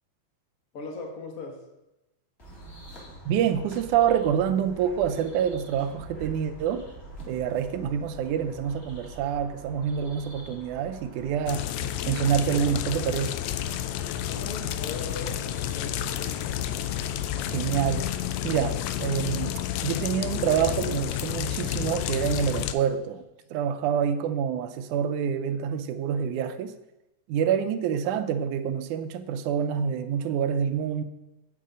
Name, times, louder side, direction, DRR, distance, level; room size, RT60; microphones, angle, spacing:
voice 1, 0.7-1.6 14.3-16.6, left 3 dB, 50° left, 1.0 m, -39 dB
sound 1, 2.4-18.0, right 2 dB, 20° left, 2.2 m, -45 dB
voice 2, 3.3-6.9 7.3-11.7 12.1-13.4 17.4-18.1 18.4-23.2 23.5-26.7 27.3-31.0, right 8 dB, 85° right, 2.0 m, -27 dB
sound 2, 11.5-22.7, left 11 dB, 80° left, 1.7 m, -30 dB
8.5 x 6.8 x 5.0 m
omnidirectional pair, 3.5 m